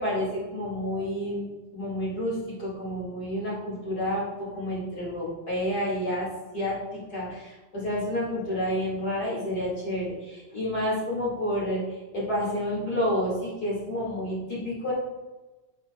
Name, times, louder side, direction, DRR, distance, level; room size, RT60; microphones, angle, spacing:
voice 1, 0.0-11.8 12.1-14.9, equal, 50° left, -8 dB, 1.1 m, -30 dB
11.5 x 4.8 x 2.5 m, 1.2 s
omnidirectional pair, 6.0 m